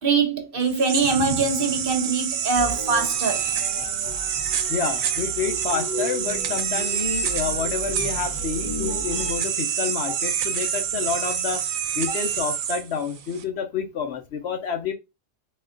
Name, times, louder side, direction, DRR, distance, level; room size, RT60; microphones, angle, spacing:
voice 1, 0.0-3.5, right 4 dB, 50° right, 0.8 m, -23 dB
sound 1, 0.6-13.4, right 8 dB, 90° right, 1.0 m, -27 dB
sound 2, 2.6-9.4, left 1 dB, 25° left, 0.6 m, -35 dB
voice 2, 4.7-11.7 11.9-14.9, left 6 dB, 60° left, 0.8 m, -29 dB
4.2 x 2.3 x 3.7 m
omnidirectional pair, 1.4 m